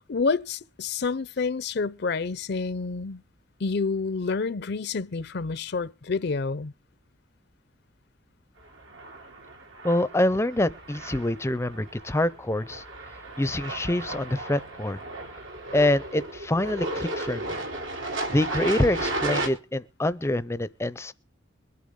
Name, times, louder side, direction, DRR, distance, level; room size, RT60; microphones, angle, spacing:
voice 1, 0.0-3.2 3.6-6.7, left 4 dB, 55° left, 0.6 m, -28 dB
sound 1, 8.8-19.5, right 2 dB, 85° right, 3.0 m, -34 dB
voice 2, 9.8-12.8 13.4-15.0 15.7-17.6 18.3-21.1, left 1 dB, 15° left, 0.5 m, -26 dB
22.5 x 8.4 x 3.7 m
head